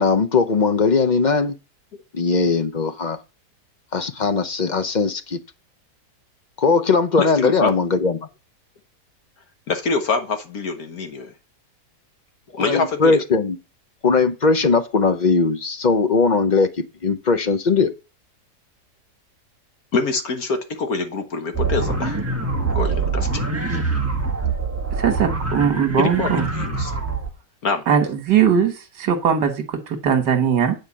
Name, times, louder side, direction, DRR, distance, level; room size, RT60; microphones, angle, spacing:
voice 1, 0.0-1.6 2.1-3.2 3.9-5.4 6.6-8.3 12.6-13.6 14.0-16.7 17.0-17.9, left 4 dB, 40° left, 0.6 m, -19 dB
voice 2, 7.2-7.8 9.7-11.3 12.5-13.2 19.9-22.2 22.7-23.8 26.0-26.9 27.6-27.8, left 4 dB, 60° left, 1.5 m, -25 dB
sound 1, 21.5-27.3, right 4 dB, 10° right, 1.5 m, -24 dB
voice 3, 25.0-26.5 27.9-30.8, right 7 dB, 80° right, 1.9 m, -20 dB
9.5 x 4.7 x 7.2 m
omnidirectional pair, 1.8 m